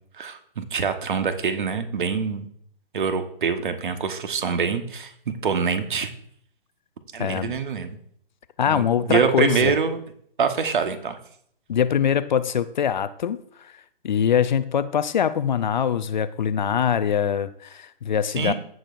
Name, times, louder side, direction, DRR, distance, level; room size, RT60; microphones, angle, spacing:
voice 1, 0.2-2.5 2.9-6.1 7.1-8.0 8.7-10.0 10.4-11.2 18.3-18.5, right 5 dB, 55° right, 8 dB, 1.3 m, -25 dB
voice 2, 7.2-7.6 8.6-9.7 11.7-13.4 14.0-18.5, left 8 dB, 50° left, 14 dB, 0.6 m, -23 dB
15.5 x 6.5 x 2.6 m, 0.65 s
figure-of-eight pair, 130°, 29 cm